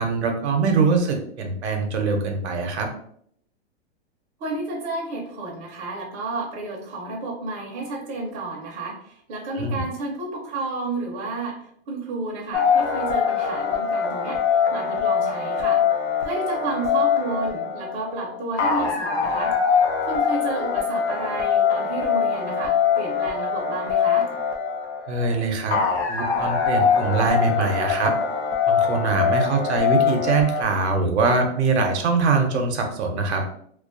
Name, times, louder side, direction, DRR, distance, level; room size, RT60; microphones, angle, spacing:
voice 1, 0.0-2.9 9.5-9.8 25.1-25.8 26.1-28.1 28.7-33.4, right 4 dB, 80° right, 3 dB, 0.6 m, -23 dB
voice 2, 4.4-11.6 11.9-15.8 16.2-19.5 20.1-24.3, right 3 dB, 25° right, -3 dB, 0.5 m, -31 dB
sound 1, 12.5-30.6, left 6 dB, 80° left, 0.6 m, -23 dB
2.3 x 2.2 x 2.4 m, 0.65 s
hypercardioid pair, 140°, 33 cm